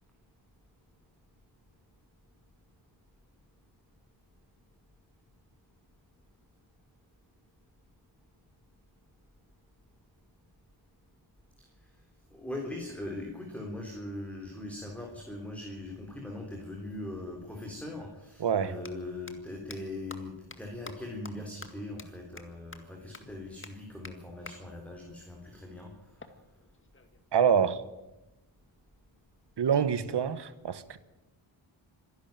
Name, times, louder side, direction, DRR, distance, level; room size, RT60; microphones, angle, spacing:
voice 1, 12.3-25.9, left 1 dB, 5° left, 3.8 m, -40 dB
voice 2, 18.4-18.7 27.3-27.8 29.6-31.0, right 7 dB, 60° right, 1.4 m, -26 dB
sound 1, 18.8-18.9 19.3-19.4 19.7-19.8 20.1-20.2 20.5-20.6 20.8-20.9 21.2-21.3 21.6-21.7 22.0-22.1 22.4-22.5 22.7-22.8 23.1-23.2 23.6-23.7 24.0-24.1 24.5-24.6 26.2-27.2, left 3 dB, 25° left, 2.0 m, -46 dB
26.0 x 11.5 x 9.0 m
cardioid pair, 100°, 46 cm